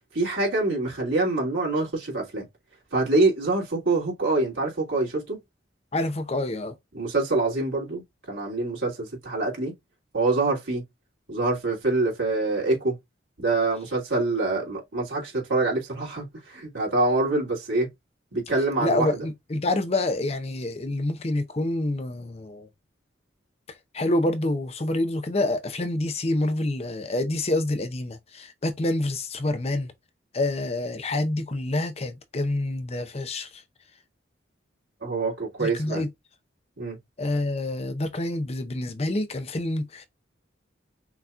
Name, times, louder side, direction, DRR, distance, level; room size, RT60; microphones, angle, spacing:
voice 1, 0.1-2.5 2.9-5.4 6.9-8.0 8.3-9.7 10.1-10.8 11.3-13.0 13.4-17.9 18.3-19.3 35.0-36.0 36.8-37.0, right 2 dB, 85° right, 2.8 m, -25 dB
voice 2, 5.9-6.7 18.8-22.7 23.9-29.9 30.3-33.6 35.6-36.1 37.2-40.1, left 2 dB, 30° left, 0.6 m, -27 dB
5.8 x 2.9 x 2.4 m
head